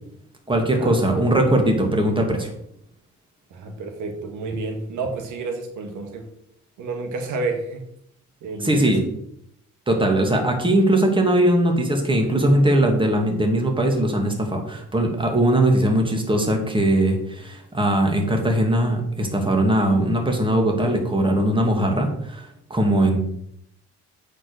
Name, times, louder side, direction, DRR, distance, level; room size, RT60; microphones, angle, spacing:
voice 1, 0.5-2.5 8.6-9.0 9.9-23.2, right 1 dB, 15° right, 3 dB, 2.3 m, -20 dB
voice 2, 3.5-6.2 6.8-7.8 8.4-9.0, right 3 dB, 80° right, 5 dB, 1.7 m, -30 dB
8.4 x 5.3 x 6.4 m, 0.73 s
cardioid pair, 90°, 30 cm